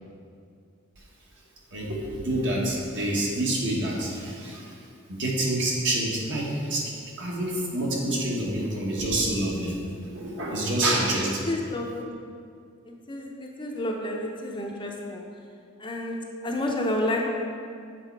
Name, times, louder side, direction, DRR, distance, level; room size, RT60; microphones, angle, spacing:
voice 1, 1.7-4.7 5.1-6.9 7.2-9.7 10.1-11.4, right 1 dB, 60° right, -3 dB, 1.3 m, -27 dB
voice 2, 11.2-12.1 12.8-15.2 15.8-17.3, left 1 dB, 20° left, 0 dB, 0.6 m, -30 dB
7.7 x 4.1 x 4.6 m, 2.3 s
head